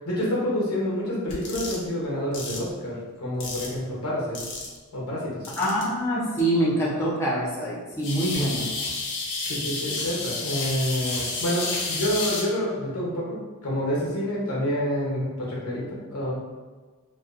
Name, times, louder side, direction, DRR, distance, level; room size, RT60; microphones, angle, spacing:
voice 1, 0.0-4.4 4.9-5.5 9.5-16.3, equal, 85° left, -4 dB, 0.8 m, -28 dB
sound 1, 1.3-1.8 2.3-2.6 3.4-3.8 4.3-4.8 5.4-5.8 6.4-6.5 8.0-12.4, left 3 dB, 55° left, 0.6 m, -31 dB
voice 2, 5.6-8.7, right 1 dB, 10° left, -7 dB, 0.5 m, -25 dB
2.6 x 2.2 x 2.4 m, 1.3 s
head